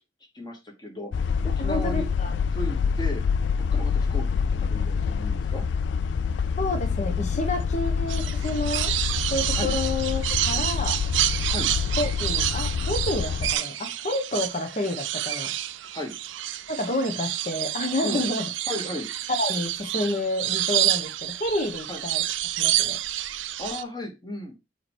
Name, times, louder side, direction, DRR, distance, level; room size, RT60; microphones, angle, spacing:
voice 1, 0.3-1.1 1.4-2.1 2.5-3.2 3.7-5.6 9.5-9.7 11.5-11.7 15.9-16.1 18.0-18.3 18.7-19.1 21.9-22.0 23.6-24.5, left 1 dB, 25° left, 2 dB, 1.5 m, -35 dB
sound 1, 1.1-13.5, left 6 dB, 70° left, 0.3 m, -26 dB
voice 2, 1.6-2.4 6.6-8.9 9.3-11.0 12.0-15.5 16.7-18.5 19.4-22.2 22.6-23.0, left 1 dB, 40° left, 5 dB, 1.2 m, -29 dB
sound 2, 8.1-23.8, right 13 dB, 85° right, 0.5 m, -29 dB
5.0 x 4.5 x 4.5 m, 0.25 s
head